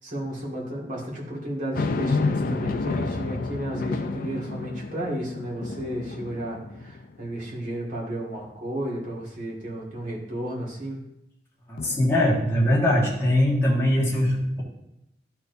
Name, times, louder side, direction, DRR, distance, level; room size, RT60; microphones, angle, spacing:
voice 1, 0.0-11.0, right 1 dB, 45° right, -4 dB, 2.0 m, -33 dB
sound 1, 1.7-7.3 7.8-7.9 11.8-12.8, left 3 dB, 50° left, 0.4 m, -30 dB
voice 2, 11.7-14.6, left 1 dB, 15° left, -5 dB, 1.6 m, -21 dB
11.5 x 4.6 x 2.7 m, 0.85 s
head